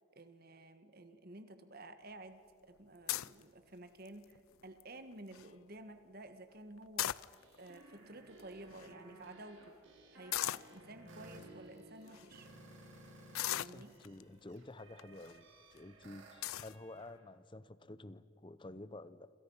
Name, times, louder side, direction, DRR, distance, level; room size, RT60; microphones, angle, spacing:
voice 1, 0.1-7.3 7.6-9.8 10.1-12.5 13.5-14.0, right 2 dB, 45° right, 1.6 m, -52 dB
sound 1, 3.1-3.4 4.0-4.4 4.8-4.9 5.1-5.5 6.8-7.7 8.4-8.5 8.7-8.9 10.3-10.7 11.4-11.5 12.1-12.3 13.3-14.2 15.0-15.3 15.8-15.9 16.4-16.7, left 13 dB, 80° left, 0.5 m, -37 dB
sound 2, 7.4-13.6 13.9-17.1, right 1 dB, 65° right, 5.5 m, -57 dB
voice 2, 13.6-19.3, left 2 dB, 25° left, 0.7 m, -51 dB
28.0 x 27.0 x 5.7 m
head